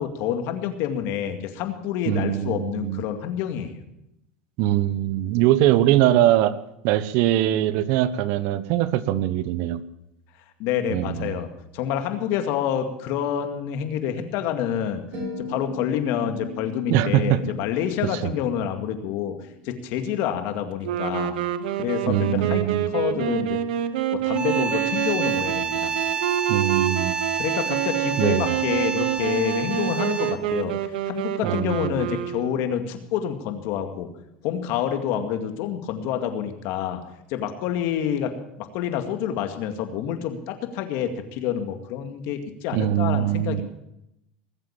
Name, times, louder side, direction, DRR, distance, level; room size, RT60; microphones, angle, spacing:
voice 1, 0.0-3.8 10.6-15.0 15.4-19.4 19.6-21.4 21.8-22.6 22.9-23.6 24.1-25.9 27.4-30.7 31.1-34.1 34.4-37.0 37.3-43.6, left 9 dB, 60° left, 7 dB, 2.1 m, -28 dB
voice 2, 2.1-3.0 4.6-6.6 6.8-9.8 10.9-11.4 16.9-17.4 18.2-18.3 22.1-22.9 26.5-27.1 28.2-28.5 31.4-32.0 42.7-43.6, right 13 dB, 65° right, 15 dB, 1.0 m, -22 dB
sound 1, 15.1-19.5, left 4 dB, 40° right, 7.1 m, -38 dB
sound 2, 20.8-32.7, right 11 dB, 85° right, 1.0 m, -27 dB
sound 3, 24.3-30.5, right 5 dB, 20° right, 1.1 m, -29 dB
20.0 x 7.8 x 7.3 m, 0.83 s
supercardioid pair, 120°, 5 cm